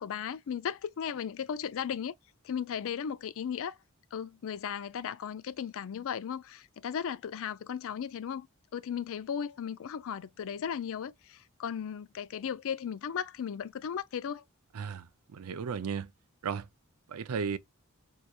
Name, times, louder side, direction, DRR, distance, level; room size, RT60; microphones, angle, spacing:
voice 1, 0.0-2.1 2.4-3.8 4.1-8.5 8.7-14.4, left 8 dB, 65° left, 0.4 m, -36 dB
voice 2, 14.7-15.1 15.3-16.1 16.4-16.7 17.1-17.6, right 6 dB, 85° right, 0.5 m, -34 dB
4.7 x 2.8 x 2.3 m
head